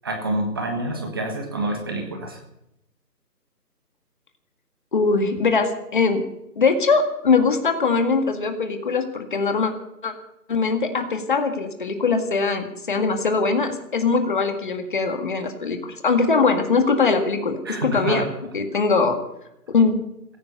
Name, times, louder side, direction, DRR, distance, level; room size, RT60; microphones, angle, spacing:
voice 1, 0.0-2.4 17.6-18.3, right 2 dB, 15° right, 3 dB, 1.4 m, -27 dB
voice 2, 4.9-6.2 6.6-9.7 10.0-10.1 10.5-18.3 18.5-19.2 19.7-20.0, left 4 dB, 30° left, 6 dB, 2.0 m, -21 dB
16.5 x 15.5 x 5.4 m, 0.82 s
figure-of-eight pair, 165°, 48 cm